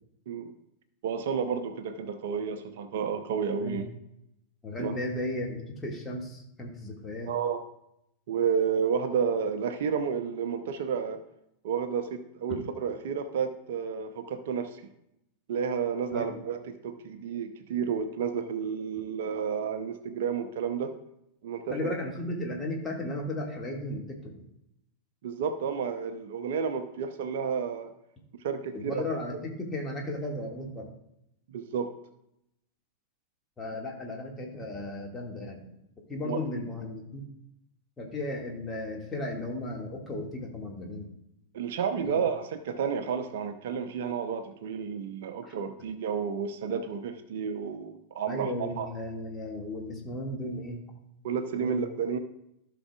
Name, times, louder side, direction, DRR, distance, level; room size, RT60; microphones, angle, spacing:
voice 1, 1.0-3.8 4.8-5.0 7.3-7.6 8.3-11.2 11.6-14.8 15.5-20.9 21.4-21.9 25.2-27.9 28.4-29.0 31.5-31.9 36.2-36.4 41.5-48.9 51.2-52.2, right 6 dB, 55° right, 8 dB, 0.7 m, -31 dB
voice 2, 4.6-7.3 12.5-12.6 16.1-16.4 21.7-24.4 28.7-30.9 33.6-35.6 36.1-37.2 38.0-41.1 42.1-42.2 45.4-45.6 48.3-50.8 51.6-51.8, left 1 dB, 15° left, 0 dB, 2.0 m, -35 dB
15.0 x 5.9 x 2.4 m, 0.80 s
figure-of-eight pair, 90°, 0 cm